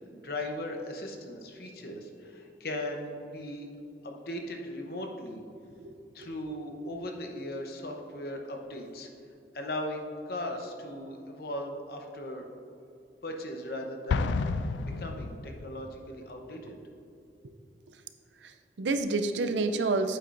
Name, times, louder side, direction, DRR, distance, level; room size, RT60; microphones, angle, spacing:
voice 1, 0.1-3.7 4.0-5.4 6.1-9.1 9.5-12.5 13.2-14.4 14.8-16.8, left 1 dB, 55° left, 3 dB, 0.9 m, -38 dB
voice 2, 5.8-6.3 14.9-15.0 16.5-16.7 17.9-18.0 18.4-20.2, right 3 dB, 80° right, 8 dB, 0.5 m, -30 dB
Explosion, 14.1-15.9, left 4 dB, 85° left, 0.3 m, -30 dB
8.6 x 8.4 x 2.6 m, 2.5 s
head